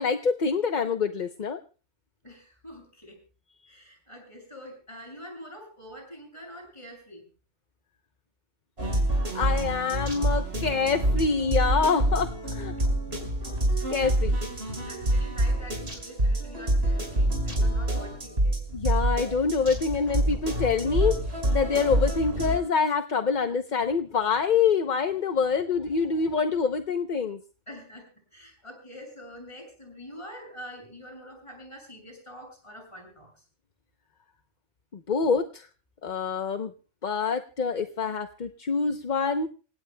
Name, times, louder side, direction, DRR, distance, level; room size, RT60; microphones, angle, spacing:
voice 1, 0.0-1.6 9.3-12.7 13.1-13.3 13.9-14.4 18.7-21.2 21.5-27.4 35.1-35.7 36.0-36.7 37.0-39.5, left 5 dB, 40° left, 7 dB, 0.9 m, -26 dB
voice 2, 2.2-3.2 3.7-7.3 14.8-18.6 27.7-33.3, equal, 25° left, 1 dB, 7.6 m, -45 dB
sound 1, 8.8-22.6, right 1 dB, 50° right, 5.6 m, -27 dB
27.5 x 17.0 x 2.3 m, 0.38 s
omnidirectional pair, 1.3 m